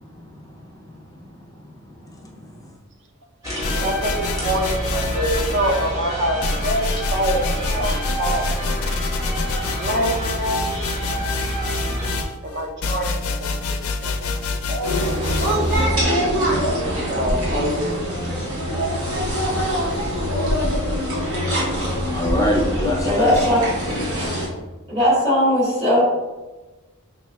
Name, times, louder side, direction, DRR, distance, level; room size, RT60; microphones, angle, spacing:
voice 1, 0.0-2.7 22.1-23.4, left 1 dB, 15° left, -1 dB, 0.4 m, -27 dB
sound 1, 3.4-12.2, right 1 dB, 15° right, 1.0 m, -28 dB
sound 2, 3.6-5.9 6.4-15.9, left 3 dB, 85° left, 0.4 m, -27 dB
voice 2, 3.7-8.6 9.8-10.8 12.4-13.8 14.0-14.3 14.7-15.1 15.4-15.7 15.9-16.1 16.7-18.2, right 1 dB, 55° right, 1 dB, 0.6 m, -26 dB
sound 3, 14.8-24.5, equal, 75° right, 1.4 m, -23 dB
voice 3, 23.0-23.6 24.9-26.0, equal, 30° right, -6 dB, 1.5 m, -18 dB
4.5 x 3.4 x 2.2 m, 1.2 s
head